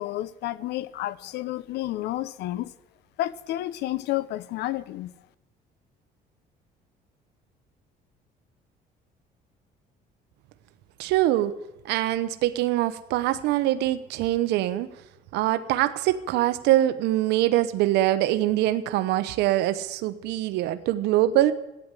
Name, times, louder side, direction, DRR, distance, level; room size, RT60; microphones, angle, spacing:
voice 1, 0.0-2.7 3.2-5.1, left 15 dB, 80° left, 0.8 m, -30 dB
voice 2, 11.0-11.5 11.9-14.9 15.3-21.5, right 14 dB, 90° right, 0.9 m, -23 dB
15.0 x 9.8 x 9.8 m
cardioid pair, 110°, 17 cm